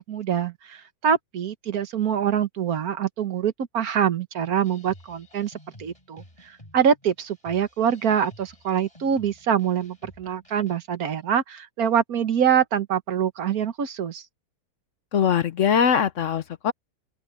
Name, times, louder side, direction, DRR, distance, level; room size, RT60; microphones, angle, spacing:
voice 1, 0.0-5.5 5.8-6.2 6.7-14.2, right 8 dB, 70° right, 1.6 m, -24 dB
sound 1, 4.6-10.9, left 1 dB, 20° left, 6.0 m, -51 dB
voice 2, 15.1-16.7, left 7 dB, 60° left, 1.0 m, -21 dB
open air
omnidirectional pair, 1.6 m